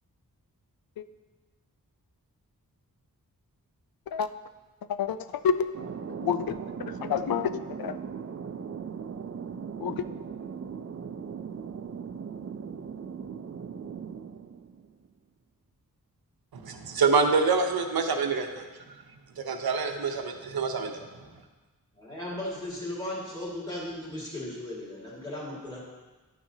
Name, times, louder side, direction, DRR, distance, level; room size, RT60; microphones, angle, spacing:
voice 1, 4.9-5.7 6.2-6.6 6.9-8.0 9.8-10.1, left 7 dB, 75° left, 12 dB, 0.5 m, -28 dB
Thunder, 5.7-15.1, right 6 dB, 40° right, 0.4 m, -38 dB
voice 2, 16.5-18.6 19.4-21.0, right 4 dB, 85° right, 5 dB, 0.8 m, -26 dB
voice 3, 21.9-25.8, left 1 dB, 10° left, -7 dB, 2.0 m, -36 dB
11.0 x 5.9 x 2.7 m, 1.3 s
wide cardioid pair, 75°, 36 cm